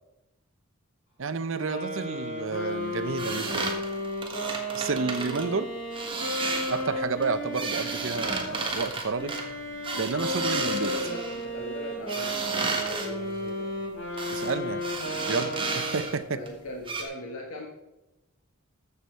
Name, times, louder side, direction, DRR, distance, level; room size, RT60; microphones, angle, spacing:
voice 1, 1.2-3.7 4.7-5.7 6.7-9.3 10.0-10.9 14.3-14.8 15.3-16.4, right 4 dB, 65° right, 12 dB, 0.7 m, -30 dB
sound 1, 1.5-8.6 9.1-16.3, equal, 55° left, 4.6 m, -34 dB
sound 2, 3.2-5.5 5.9-6.9 7.2-11.4 12.1-13.1 14.2-14.5 14.8-16.2 16.5-16.6 16.9-17.0, right 3 dB, 25° right, 1.5 m, -33 dB
voice 2, 10.6-13.7 15.0-15.4 16.3-17.7, left 1 dB, 90° left, 0 dB, 1.4 m, -39 dB
14.0 x 7.0 x 4.5 m, 0.97 s
head